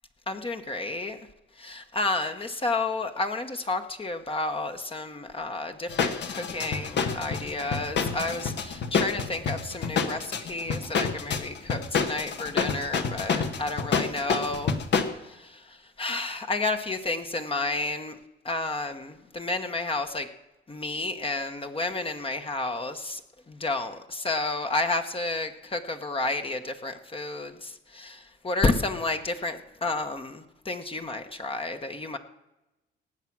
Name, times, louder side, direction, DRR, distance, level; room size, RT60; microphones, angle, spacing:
voice 1, 0.3-1.2 1.6-14.7 16.0-18.1 18.4-20.3 20.7-23.2 23.5-32.2, left 2 dB, 25° left, 6 dB, 1.1 m, -31 dB
sound 1, 5.9-15.1, left 6 dB, 60° left, 1.3 m, -28 dB
18.5 x 7.4 x 6.0 m, 0.98 s
cardioid pair, 90°, 20 cm